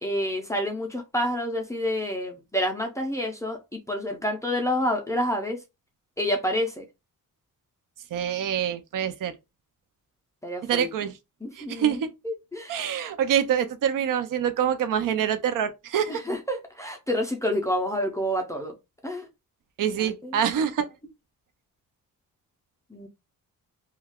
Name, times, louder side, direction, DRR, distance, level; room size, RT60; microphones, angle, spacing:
voice 1, 0.0-5.6 6.2-6.8 10.4-10.9 11.4-12.8 16.1-18.7 19.0-19.3 20.0-20.4 22.9-23.1, equal, 10° left, 0.4 m, -28 dB
voice 2, 8.1-9.3 10.6-11.1 11.6-12.1 12.7-16.2 19.8-20.9, right 9 dB, 70° right, 0.5 m, -26 dB
2.3 x 2.2 x 3.4 m
wide cardioid pair, 165°, 34 cm